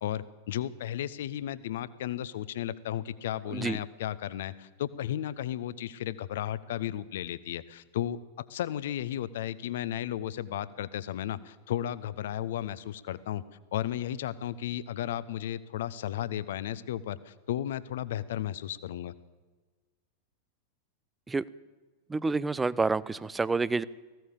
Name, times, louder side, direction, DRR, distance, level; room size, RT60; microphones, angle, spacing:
voice 1, 0.0-8.2 8.5-13.4 13.7-19.1, left 11 dB, 55° left, 16 dB, 0.9 m, -34 dB
voice 2, 22.1-23.8, right 3 dB, 10° right, 20 dB, 0.6 m, -28 dB
19.5 x 16.0 x 8.4 m, 1.3 s
figure-of-eight pair, 90°, 0 cm